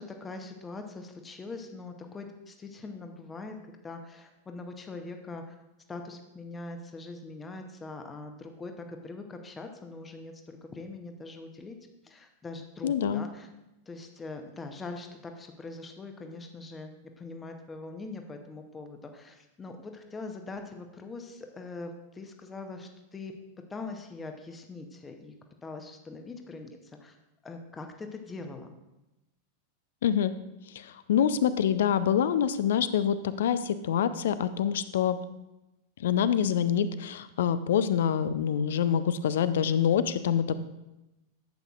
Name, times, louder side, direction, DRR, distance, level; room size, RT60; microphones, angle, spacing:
voice 1, 0.0-3.5 3.8-5.4 5.9-11.8 12.0-13.5 13.9-23.3 23.7-25.3 25.6-27.1 27.4-28.7, left 3 dB, 15° left, 5 dB, 0.9 m, -42 dB
voice 2, 12.8-13.3 30.0-30.3 30.7-35.2 36.0-40.5, left 8 dB, 60° left, 13 dB, 0.4 m, -26 dB
11.5 x 8.0 x 2.4 m, 0.97 s
figure-of-eight pair, 90°, 0 cm